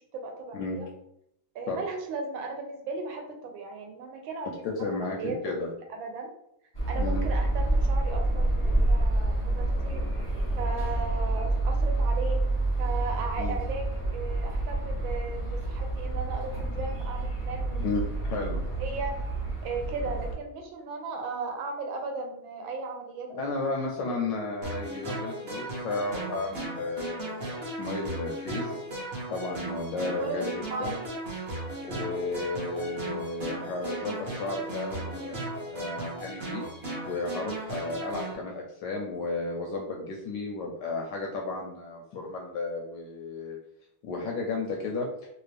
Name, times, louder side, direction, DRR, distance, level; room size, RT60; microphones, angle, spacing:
voice 1, 0.1-0.9 1.5-5.6 5.9-6.3 6.9-10.1 10.6-12.4 12.8-17.9 18.2-19.2 19.6-23.6 30.2-31.1, right 3 dB, 75° right, 3 dB, 1.2 m, -36 dB
voice 2, 4.6-5.7 7.0-7.3 13.4-13.6 17.8-18.6 20.0-20.1 23.3-28.8 29.3-31.0 31.8-35.4 35.7-36.6 37.0-43.6 44.0-45.1, left 3 dB, 75° left, 0 dB, 1.0 m, -33 dB
sound 1, 6.7-20.3, right 2 dB, 25° left, 0.6 m, -28 dB
sound 2, 24.6-38.3, right 2 dB, 50° right, 0.7 m, -36 dB
3.3 x 2.4 x 3.2 m, 0.77 s
omnidirectional pair, 2.3 m